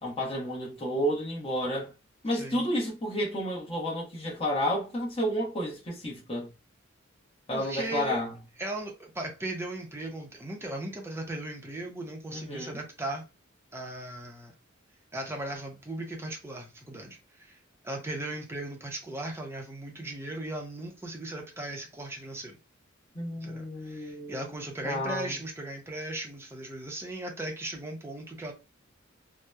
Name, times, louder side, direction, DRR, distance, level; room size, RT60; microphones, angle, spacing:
voice 1, 0.0-1.9 2.2-6.5 7.5-8.3 12.3-12.8 23.1-24.4 24.8-25.4, equal, 30° left, 0.8 m, -31 dB
voice 2, 7.5-8.2 8.6-13.3 13.7-14.5 15.1-17.6 17.8-22.6 23.4-28.5, right 1 dB, 10° right, 0.5 m, -37 dB
2.8 x 2.0 x 2.2 m
head